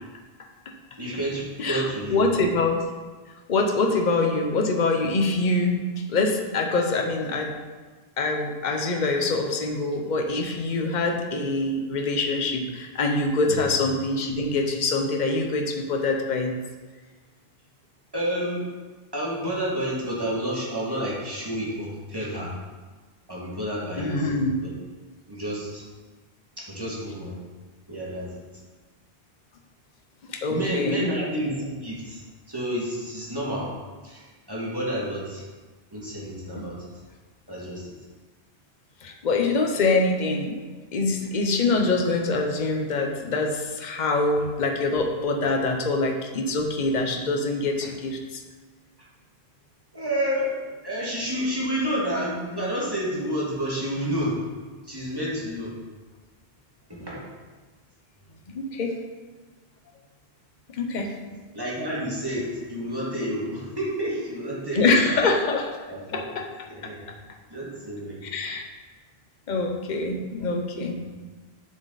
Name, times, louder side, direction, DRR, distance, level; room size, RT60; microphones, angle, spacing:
voice 1, 1.0-2.2 13.5-13.7 18.1-18.7 19.1-22.6 23.3-24.3 24.6-24.7 25.3-25.8 26.6-27.4 27.9-28.4 30.5-32.2 32.5-33.7 34.0-35.4 35.9-36.8 37.5-37.9 49.9-50.6 50.8-54.4 54.8-55.8 56.9-57.3 61.5-65.2 65.9-66.3 66.7-67.0 67.5-68.2 71.0-71.1, equal, 20° right, -7 dB, 2.2 m, -30 dB
voice 2, 2.1-2.8 3.5-5.8 6.1-7.5 8.2-16.5 24.0-24.5 30.3-31.1 39.0-40.6 40.9-48.4 58.5-58.9 60.7-61.1 64.7-65.7 66.1-66.5 68.3-68.6 69.5-71.1, left 3 dB, 50° left, 2 dB, 1.0 m, -24 dB
7.3 x 7.1 x 4.1 m, 1.4 s
omnidirectional pair, 1.0 m